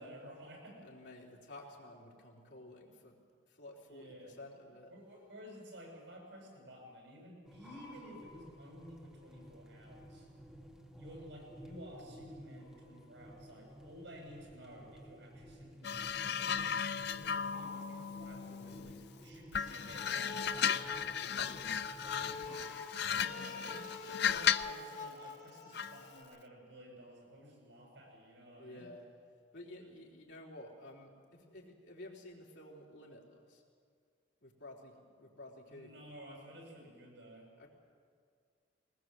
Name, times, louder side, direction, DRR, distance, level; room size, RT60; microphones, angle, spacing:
voice 1, 0.0-0.9 3.9-4.4 4.9-10.3 11.0-16.8 17.1-22.7 23.1-23.9 24.1-28.9 29.8-30.0 35.7-37.5, equal, 80° right, 0 dB, 7.7 m, -53 dB
voice 2, 0.8-3.2 3.5-4.9 21.0-21.2 28.6-29.1 29.5-33.6 34.4-36.1 37.6-37.7, left 1 dB, 75° left, -3 dB, 3.8 m, -52 dB
sound 1, 7.4-23.3, equal, 5° right, 1.8 m, -54 dB
sound 2, 15.8-19.1 19.5-24.8 25.7-26.0, left 8 dB, 60° left, 0.5 m, -35 dB
sound 3, 19.5-26.2, left 4 dB, 45° left, 3.0 m, -46 dB
20.5 x 20.0 x 7.8 m, 2.1 s
head